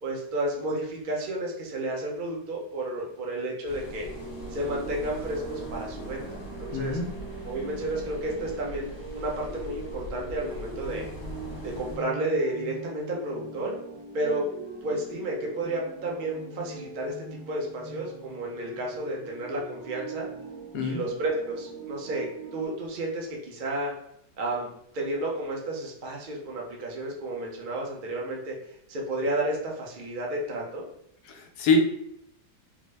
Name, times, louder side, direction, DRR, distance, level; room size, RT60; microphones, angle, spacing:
voice 1, 0.0-4.1 4.5-7.0 7.5-11.0 11.6-13.7 14.1-14.5 14.8-20.3 20.8-22.3 22.5-23.9 24.4-24.7 24.9-28.5 28.9-30.8, right 1 dB, 65° right, -2 dB, 0.4 m, -32 dB
sound 1, 3.6-12.0, left 1 dB, 35° left, 1.0 m, -41 dB
sound 2, 4.0-22.7, right 3 dB, 80° right, 1.9 m, -42 dB
voice 2, 6.7-7.1 20.7-21.0 31.3-31.8, left 5 dB, 70° left, 3 dB, 1.1 m, -25 dB
3.8 x 2.0 x 3.2 m, 0.77 s
omnidirectional pair, 1.8 m